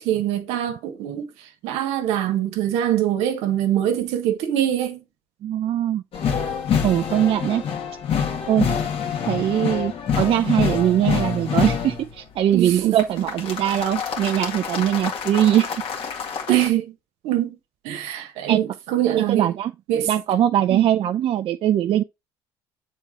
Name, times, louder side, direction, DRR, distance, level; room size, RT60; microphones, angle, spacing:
voice 1, 0.0-5.0 12.5-13.0 16.5-16.9 17.2-17.6 17.8-19.5 19.9-20.1 20.7-20.9, right 12 dB, 75° right, 1.3 m, -23 dB
voice 2, 5.4-6.0 6.8-7.6 8.5-8.7 9.3-15.7 16.5-16.6 18.5-18.6 19.3-19.7 20.1-22.0, right 11 dB, 55° right, 0.5 m, -21 dB
sound 1, 6.1-12.1 13.0-16.7, left 7 dB, 60° left, 2.1 m, -26 dB
7.3 x 4.2 x 3.7 m
supercardioid pair, 70°, 11 cm